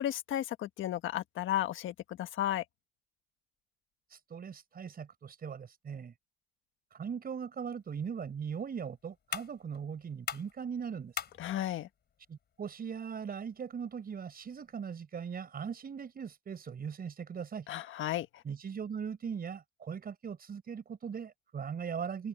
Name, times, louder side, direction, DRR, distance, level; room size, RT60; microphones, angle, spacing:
voice 1, 0.0-2.6 11.4-11.9 17.7-18.3, left 12 dB, 80° left, 1.5 m, -33 dB
voice 2, 4.1-6.1 6.9-11.3 12.3-17.7 18.4-22.3, right 7 dB, 50° right, 5.6 m, -40 dB
sound 1, 7.8-14.8, left 8 dB, 55° left, 4.2 m, -46 dB
open air
cardioid pair, 90°, 20 cm